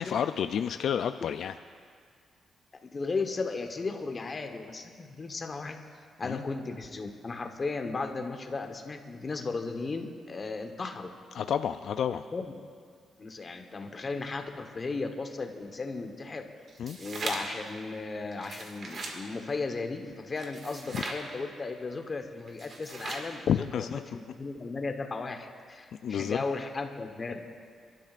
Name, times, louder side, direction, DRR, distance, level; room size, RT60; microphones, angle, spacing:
voice 1, 0.0-1.5 6.2-6.4 11.4-12.2 16.8-17.0 20.9-21.0 23.5-24.0 26.0-26.4, left 8 dB, 65° left, 9 dB, 0.3 m, -30 dB
voice 2, 2.9-5.8 6.2-11.1 12.1-12.5 13.2-16.4 17.0-27.5, left 3 dB, 30° left, 5 dB, 1.1 m, -35 dB
sound 1, 16.7-17.6 18.3-19.2 20.4-21.2 22.5-23.3, right 2 dB, 45° right, 1.9 m, -38 dB
28.5 x 12.0 x 2.5 m, 2.1 s
cardioid pair, 130°, 0 cm